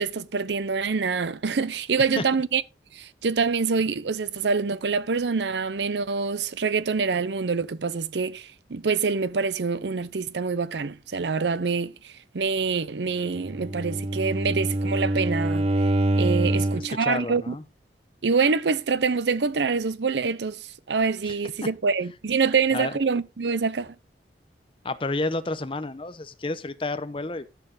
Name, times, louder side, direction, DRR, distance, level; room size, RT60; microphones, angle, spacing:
voice 1, 0.0-2.6 2.9-17.5 18.2-23.9, right 5 dB, 80° right, 0.6 m, -26 dB
Bowed string instrument, 13.3-17.0, right 1 dB, 35° right, 0.7 m, -25 dB
voice 2, 16.5-17.6 21.2-21.3 22.7-23.0 24.8-27.5, left 2 dB, 30° left, 0.8 m, -31 dB
12.0 x 6.8 x 3.9 m
head